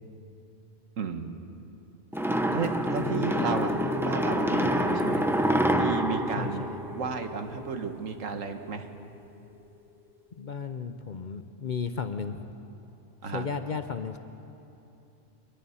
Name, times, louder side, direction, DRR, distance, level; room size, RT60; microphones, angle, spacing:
voice 1, 1.0-1.3 2.5-6.7 7.0-8.9 13.2-13.5, right 5 dB, 80° right, 6 dB, 1.6 m, -33 dB
sound 1, 2.1-7.5, right 1 dB, 5° right, 0.5 m, -27 dB
sound 2, 2.7-10.1, left 6 dB, 45° right, 2.2 m, -39 dB
voice 2, 3.0-3.7 6.4-6.8 10.4-12.5 13.3-14.2, left 6 dB, 45° left, 8 dB, 0.7 m, -34 dB
24.0 x 20.5 x 5.7 m, 2.9 s
omnidirectional pair, 1.3 m